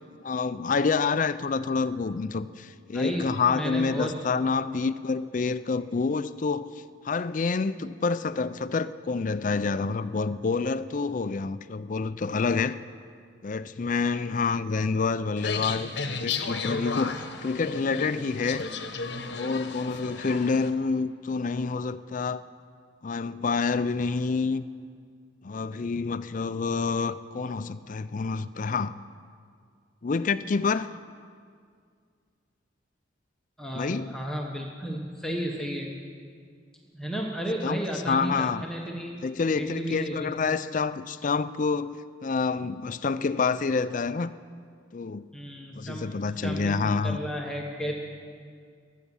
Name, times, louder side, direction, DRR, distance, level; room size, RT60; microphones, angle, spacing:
voice 1, 0.2-6.7 7.0-12.8 13.4-17.1 17.4-18.7 19.3-22.4 23.0-24.7 25.4-28.9 30.0-30.9 33.7-34.1 37.6-37.8 38.1-38.6 39.2-44.3 44.9-45.2 45.7-47.2, left 4 dB, 40° left, 14 dB, 0.4 m, -28 dB
voice 2, 2.9-4.1 33.6-35.9 36.9-39.2 39.6-40.6 45.3-46.1 46.4-47.9, equal, 5° left, -1 dB, 1.1 m, -33 dB
sound 1, 15.4-20.7, left 4 dB, 55° left, 1.1 m, -34 dB
23.0 x 8.4 x 7.0 m, 2.1 s
head